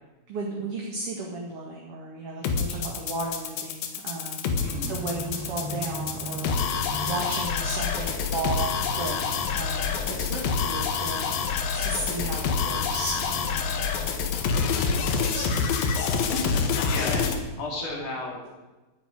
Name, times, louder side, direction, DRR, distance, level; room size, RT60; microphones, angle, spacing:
voice 1, 0.3-4.6 4.9-13.9 14.8-15.7, right 3 dB, 45° right, -1 dB, 2.7 m, -35 dB
sound 1, 2.4-17.4, left 6 dB, 85° left, 3.3 m, -27 dB
sound 2, 4.5-14.9, equal, 25° right, 4.2 m, -40 dB
voice 2, 4.6-5.0 16.5-18.5, left 2 dB, 60° left, -1 dB, 4.0 m, -34 dB
13.5 x 9.8 x 9.3 m, 1.1 s
omnidirectional pair, 4.0 m